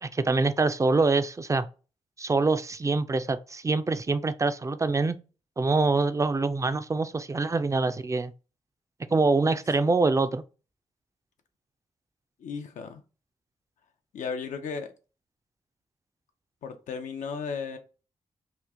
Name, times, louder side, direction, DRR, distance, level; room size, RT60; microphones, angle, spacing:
voice 1, 0.0-1.7 2.2-5.2 5.6-8.3 9.1-10.4, right 3 dB, 25° right, 0.4 m, -25 dB
voice 2, 12.4-13.0 14.1-14.9 16.6-17.8, left 5 dB, 85° left, 0.6 m, -35 dB
3.0 x 2.4 x 3.5 m
cardioid pair, 65°, 13 cm